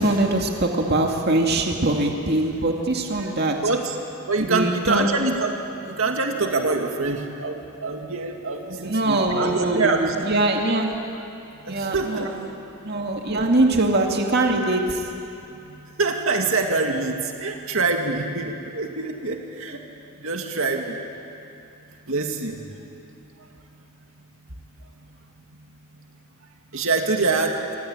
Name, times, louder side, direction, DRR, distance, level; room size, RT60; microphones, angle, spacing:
voice 1, 0.0-3.7 4.4-5.1 8.8-11.0 11.7-12.5 12.8-15.1, right 2 dB, 50° right, 2 dB, 2.3 m, -22 dB
voice 2, 3.6-4.0 4.3-5.5 5.9-10.2 11.7-12.3 13.3-13.5 16.0-19.8 20.2-20.9 22.1-22.6 26.7-27.5, right 3 dB, 70° right, 3 dB, 2.4 m, -25 dB
27.0 x 25.0 x 8.9 m, 2.8 s
head